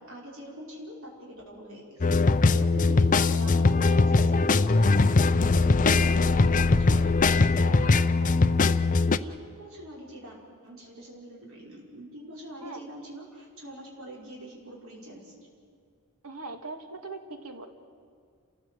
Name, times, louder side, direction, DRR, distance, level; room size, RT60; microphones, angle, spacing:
voice 1, 0.0-5.5 5.8-10.4 10.6-15.3, equal, 70° right, -3 dB, 5.6 m, -44 dB
sound 1, 2.0-9.2, left 3 dB, 35° left, 0.5 m, -21 dB
voice 2, 16.2-17.7, right 3 dB, 90° right, 6 dB, 2.0 m, -40 dB
30.0 x 15.0 x 7.8 m, 2.2 s
head